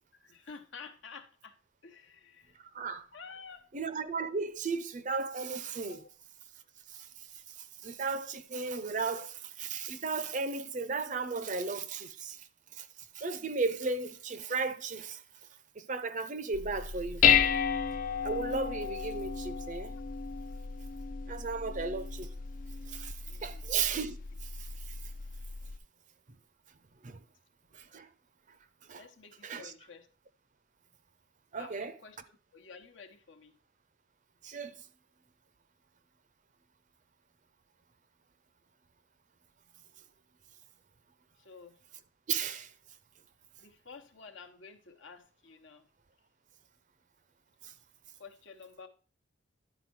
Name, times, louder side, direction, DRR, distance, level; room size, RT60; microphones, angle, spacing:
voice 1, 0.1-2.6 3.1-3.7 5.9-6.1 9.1-9.3 23.2-23.7 28.9-30.1 31.6-33.6 41.4-41.8 43.6-45.9 48.2-48.9, left 5 dB, 70° left, 1.0 m, -51 dB
voice 2, 2.7-3.1 3.7-6.0 6.9-12.5 12.7-15.2 15.8-17.3 18.2-20.0 21.3-22.3 22.9-25.0 27.0-27.2 27.7-28.1 28.8-29.1 29.4-29.7 31.5-31.9 34.4-34.8 42.3-42.7 47.6-47.7, right 4 dB, 40° right, 0.5 m, -35 dB
Dishes pots and pans, 16.5-25.8, left 7 dB, 40° left, 0.4 m, -32 dB
11.0 x 4.5 x 4.6 m
head